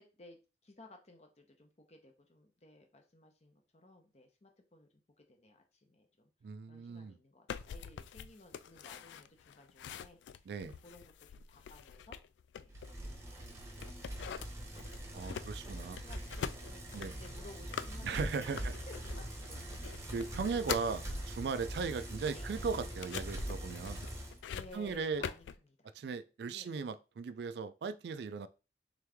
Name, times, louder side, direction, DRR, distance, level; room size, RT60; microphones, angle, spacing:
voice 1, 0.0-4.9 5.3-6.3 6.7-10.5 10.8-12.2 12.6-12.8 13.0-13.6 13.9-15.3 15.7-19.6 21.9-22.1 22.3-22.5 24.4-25.9 26.5-26.7, left 1 dB, 40° left, 0.8 m, -58 dB
voice 2, 6.4-7.2 10.5-10.8 15.1-16.0 16.9-17.1 18.0-18.7 20.1-24.0 24.7-25.3 25.9-28.5, right 5 dB, 65° right, 0.3 m, -37 dB
sound 1, 7.5-13.3 13.8-21.0 21.5-25.6, left 8 dB, 85° left, 0.3 m, -45 dB
Bicycle, 12.7-24.4, right 1 dB, 15° right, 0.9 m, -43 dB
3.7 x 3.1 x 3.4 m
head